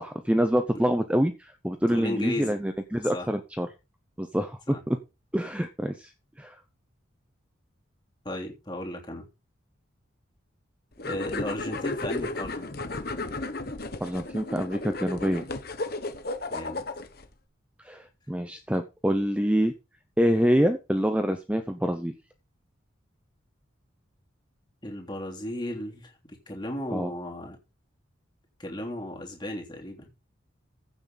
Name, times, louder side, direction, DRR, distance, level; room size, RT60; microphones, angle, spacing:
voice 1, 0.0-3.7 4.2-5.0 5.3-6.1 6.4-6.6 14.0-15.4 17.8-19.7 20.2-22.1 26.9-27.1, equal, 5° right, 7 dB, 0.7 m, -26 dB
voice 2, 1.9-2.6 3.1-3.3 4.7-4.8 8.2-9.3 11.0-12.7 16.5-16.8 24.8-27.6 28.6-30.1, left 1 dB, 20° left, 0 dB, 3.2 m, -35 dB
sound 1, 11.0-17.3, left 2 dB, 45° left, 1.2 m, -34 dB
15.5 x 7.1 x 4.0 m, 0.28 s
head